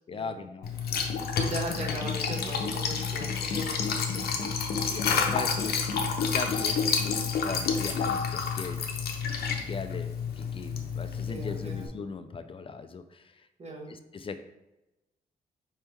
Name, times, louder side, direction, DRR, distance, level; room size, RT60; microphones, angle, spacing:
voice 1, 0.1-1.4 4.9-5.8 6.2-8.8 9.7-13.5 13.9-14.4, left 5 dB, 35° left, 10 dB, 0.3 m, -39 dB
Liquid, 0.6-11.9, left 5 dB, 80° left, 0.6 m, -29 dB
voice 2, 1.3-4.5 11.3-11.9 13.6-13.9, right 2 dB, 40° right, 0 dB, 1.1 m, -39 dB
4.4 x 3.4 x 3.0 m, 0.95 s
cardioid pair, 80°, 16 cm